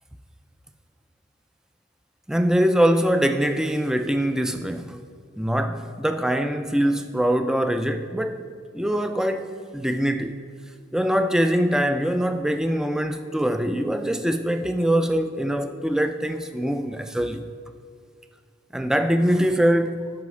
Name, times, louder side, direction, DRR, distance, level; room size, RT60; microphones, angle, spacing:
voice 1, 2.3-5.0 5.4-10.4 10.9-17.4 18.7-20.0, equal, 5° right, 0.3 m, -23 dB
11.5 x 4.8 x 6.2 m
head